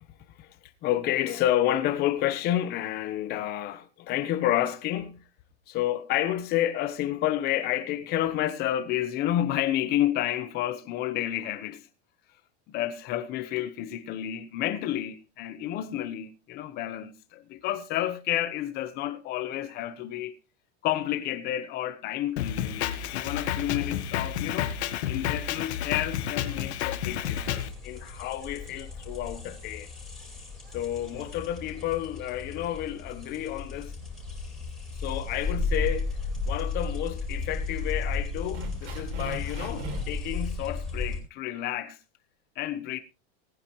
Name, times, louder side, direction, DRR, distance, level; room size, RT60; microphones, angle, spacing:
voice 1, 0.8-5.2 5.7-11.9 12.7-20.3 20.8-24.8 25.1-29.9 30.7-33.9 35.0-36.2 36.5-42.0 42.6-43.0, left 12 dB, 30° left, 1.0 m, -30 dB
Drum kit, 22.4-27.7, left 10 dB, 75° left, 1.6 m, -30 dB
sound 1, 27.1-41.2, left 3 dB, ahead, 5.2 m, -34 dB
sound 2, 35.4-36.1 36.4-36.6 37.2-37.3 37.6-37.7 38.5-40.2, right 3 dB, 50° right, 4.3 m, -40 dB
19.0 x 9.9 x 3.1 m
supercardioid pair, 170°, 33 cm